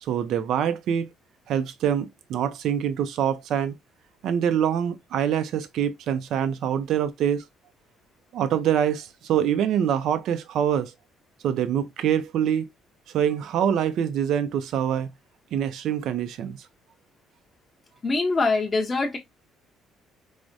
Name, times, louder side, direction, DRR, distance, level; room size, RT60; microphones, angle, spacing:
voice 1, 0.0-1.1 1.5-3.8 4.2-7.4 8.3-10.9 11.4-12.7 13.1-15.1 15.5-16.6, right 9 dB, 60° right, 0.4 m, -25 dB
voice 2, 18.0-19.2, left 3 dB, 20° left, 0.8 m, -23 dB
4.7 x 2.1 x 2.5 m
cardioid pair, 170°, 0 cm